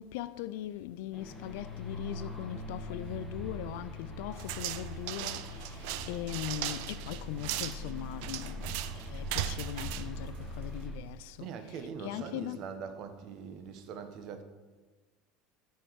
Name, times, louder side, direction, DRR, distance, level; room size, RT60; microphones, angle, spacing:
voice 1, 0.0-12.6, left 12 dB, 80° left, 0.3 m, -40 dB
sound 1, 1.1-11.0, left 1 dB, 5° left, 1.6 m, -42 dB
sound 2, 4.4-10.9, right 12 dB, 70° right, 0.5 m, -38 dB
voice 2, 11.4-14.4, right 6 dB, 55° right, 1.1 m, -42 dB
13.5 x 4.6 x 4.7 m
supercardioid pair, 125°, 0 cm